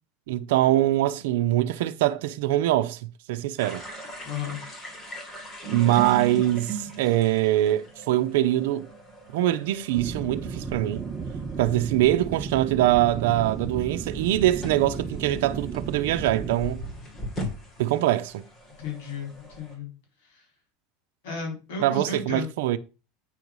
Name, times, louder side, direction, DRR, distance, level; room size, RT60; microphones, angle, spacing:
voice 1, 0.3-3.0 3.3-3.8 5.7-8.9 9.3-11.0 11.6-16.8 17.8-18.4 21.8-22.8, right 14 dB, 80° right, 0.7 m, -23 dB
sound 1, 3.6-19.8, right 2 dB, 20° left, 3.1 m, -40 dB
voice 2, 4.2-4.6 18.8-19.9 20.2-20.4 21.2-22.5, left 4 dB, 80° left, 4.5 m, -34 dB
sound 2, 9.9-16.6, right 5 dB, 20° right, 1.0 m, -34 dB
9.0 x 4.7 x 5.4 m
supercardioid pair, 150°, 0 cm